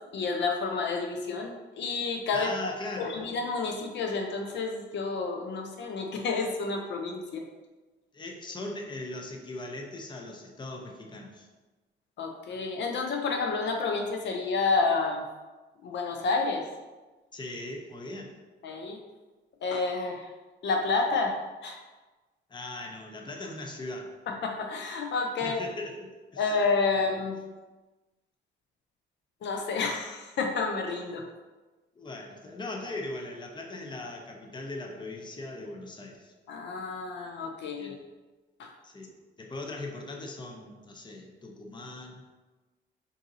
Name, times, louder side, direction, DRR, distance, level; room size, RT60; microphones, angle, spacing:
voice 1, 0.1-2.5 3.0-7.4 12.2-15.2 15.8-16.7 18.6-19.0 19.6-20.3 20.6-21.4 21.6-21.8 24.4-25.6 26.4-27.4 29.4-31.2 36.5-38.0 38.6-38.7, left 4 dB, 65° left, 3 dB, 0.5 m, -29 dB
voice 2, 2.3-3.2 8.1-11.5 17.3-18.3 22.5-24.1 25.4-26.6 26.9-27.0 31.9-36.3 37.8-38.0 38.8-39.1 39.4-42.4, left 2 dB, 25° left, 2 dB, 0.6 m, -39 dB
3.7 x 2.7 x 3.9 m, 1.2 s
cardioid pair, 90°, 20 cm